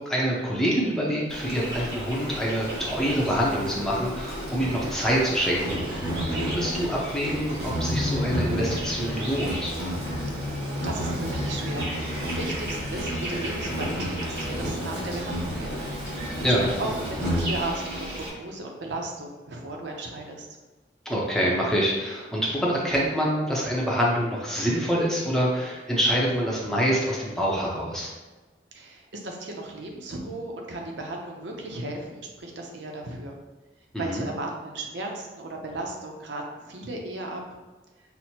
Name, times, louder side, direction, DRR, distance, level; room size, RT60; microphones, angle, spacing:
voice 1, 0.0-9.8 16.4-16.7 21.1-28.1 33.9-34.3, equal, 5° left, -5 dB, 0.6 m, -26 dB
Insect, 1.3-18.3, equal, 65° right, 1.4 m, -31 dB
voice 2, 10.3-11.9 12.2-15.9 16.2-20.5 28.7-33.4 34.0-37.4, right 2 dB, 90° right, 1 dB, 0.7 m, -35 dB
6.0 x 2.1 x 2.8 m, 1.2 s
head